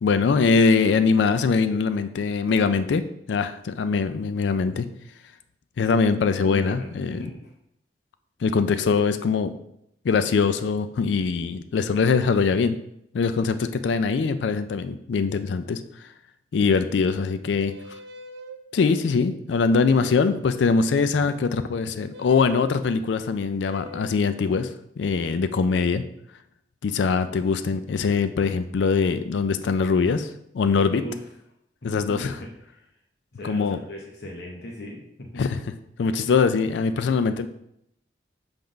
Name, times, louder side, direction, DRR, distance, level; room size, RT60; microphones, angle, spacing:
voice 1, 0.0-4.9 5.8-7.2 8.4-9.5 10.0-12.8 13.1-15.8 16.5-17.7 18.7-24.7 25.0-26.0 26.8-30.3 30.5-31.0 31.8-32.3 33.4-33.8 35.4-35.6 36.0-37.5, left 5 dB, 85° left, 11 dB, 0.4 m, -22 dB
voice 2, 6.4-7.5 21.0-21.4 31.0-31.3 31.8-32.9 33.3-35.4, left 1 dB, 60° left, -1 dB, 1.0 m, -38 dB
sound 1, 17.7-18.6 19.8-20.4 22.1-22.8 23.6-24.3, left 2 dB, 75° right, 0.6 m, -41 dB
5.8 x 3.5 x 5.2 m, 0.77 s
head